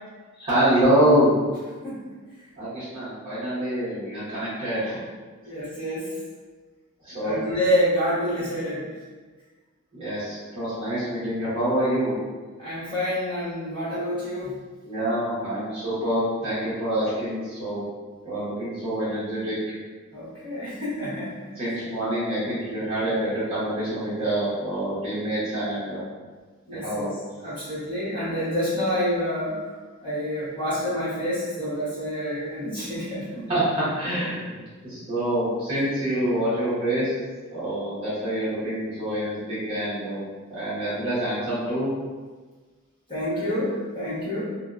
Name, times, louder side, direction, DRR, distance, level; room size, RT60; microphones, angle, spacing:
voice 1, 0.4-1.3 2.6-5.0 7.0-7.4 9.9-12.1 14.8-17.8 18.2-19.6 21.6-26.0 26.7-27.1 33.5-33.6 33.9-37.1 37.5-40.2 40.5-41.9, right 1 dB, 25° right, -13 dB, 0.9 m, -26 dB
voice 2, 5.4-6.1 7.2-8.8 12.6-14.6 20.1-21.4 26.7-27.1 27.4-29.6 30.0-33.5 43.1-44.4, equal, 20° left, -12 dB, 1.2 m, -28 dB
2.7 x 2.2 x 2.3 m, 1.4 s
head